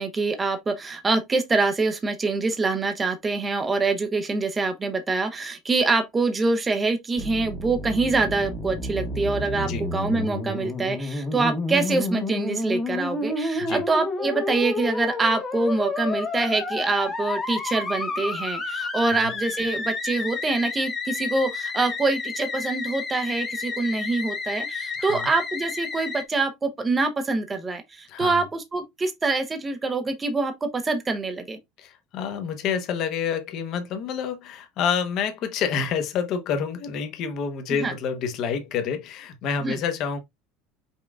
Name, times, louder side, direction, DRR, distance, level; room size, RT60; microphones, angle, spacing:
voice 1, 0.0-31.6 37.8-37.9 39.6-39.8, right 3 dB, 15° right, 0.7 m, -25 dB
Musical instrument, 7.2-26.2, left 3 dB, 15° left, 1.1 m, -30 dB
voice 2, 25.0-25.3 28.1-28.4 31.8-40.2, left 7 dB, 40° left, 1.0 m, -28 dB
5.4 x 3.7 x 2.4 m
cardioid pair, 165°, 0 cm